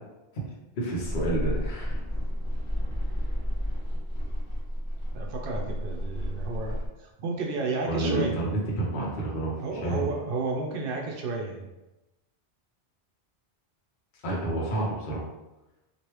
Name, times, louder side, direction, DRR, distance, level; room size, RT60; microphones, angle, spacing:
voice 1, 0.8-2.0 7.9-9.6 9.8-10.1 14.2-15.3, right 1 dB, 50° left, -3 dB, 0.9 m, -29 dB
sound 1, 1.0-6.9, equal, 20° right, 0.9 m, -31 dB
voice 2, 5.1-8.4 9.6-11.7, right 3 dB, 65° right, 0 dB, 0.7 m, -32 dB
3.1 x 2.5 x 3.0 m, 1.0 s
omnidirectional pair, 1.1 m